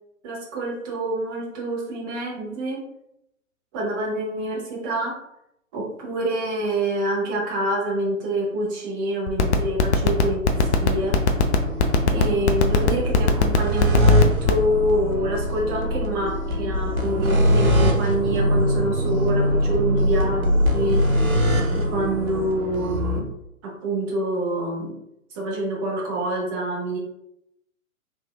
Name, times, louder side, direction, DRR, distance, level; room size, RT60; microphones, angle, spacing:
voice 1, 0.2-2.8 3.7-5.2 5.7-10.5 10.8-11.2 12.1-21.1 21.7-23.3 23.6-24.9 25.3-27.0, right 1 dB, 15° right, -3 dB, 0.6 m, -26 dB
sound 1, 9.3-14.6, left 6 dB, 55° left, 0.6 m, -17 dB
sound 2, 10.5-23.2, equal, 80° right, 0.9 m, -22 dB
3.4 x 3.2 x 2.2 m, 0.80 s
figure-of-eight pair, 125°, 41 cm